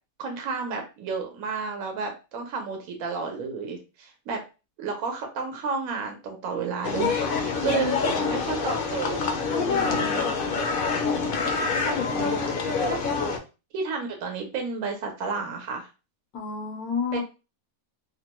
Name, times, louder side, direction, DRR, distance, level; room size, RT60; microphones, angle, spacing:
voice 1, 0.2-4.4 4.8-9.2 9.6-10.3 12.8-13.0 13.7-15.9 17.1-17.2, right 5 dB, 80° right, 3 dB, 1.1 m, -31 dB
sound 1, 6.8-13.4, left 4 dB, 60° left, 0.6 m, -26 dB
voice 2, 7.6-8.4 9.5-10.5 11.7-12.5 16.3-17.2, left 5 dB, 90° left, 1 dB, 1.4 m, -31 dB
3.3 x 2.1 x 2.9 m, 0.31 s
omnidirectional pair, 1.5 m